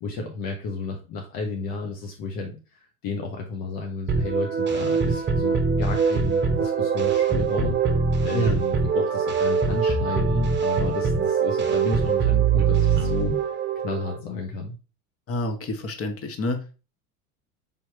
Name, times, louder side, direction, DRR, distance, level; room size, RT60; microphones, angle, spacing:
voice 1, 0.0-13.4 13.8-14.7, left 3 dB, 55° left, 1 dB, 1.1 m, -32 dB
sound 1, 4.1-14.2, right 5 dB, 25° right, 0.9 m, -23 dB
voice 2, 15.3-16.7, left 1 dB, 30° left, 6 dB, 1.1 m, -28 dB
5.2 x 3.0 x 3.0 m, 0.33 s
hypercardioid pair, 75°, 42 cm